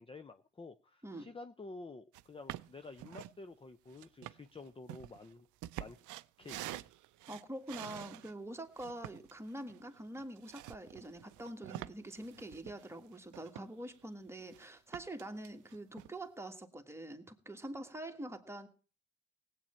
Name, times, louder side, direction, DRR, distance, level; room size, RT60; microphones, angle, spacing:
voice 1, 0.0-5.5 5.8-6.0 6.4-6.8, left 3 dB, 20° left, 10 dB, 0.6 m, -50 dB
sound 1, 2.1-2.2 2.5-3.4 3.9-8.3 8.8-14.0 14.3-14.7 14.9-16.1, right 15 dB, 80° right, 0.5 m, -47 dB
voice 2, 7.3-18.7, right 1 dB, 10° right, 5 dB, 1.7 m, -45 dB
18.0 x 8.7 x 4.4 m, 0.39 s
cardioid pair, 90°, 30 cm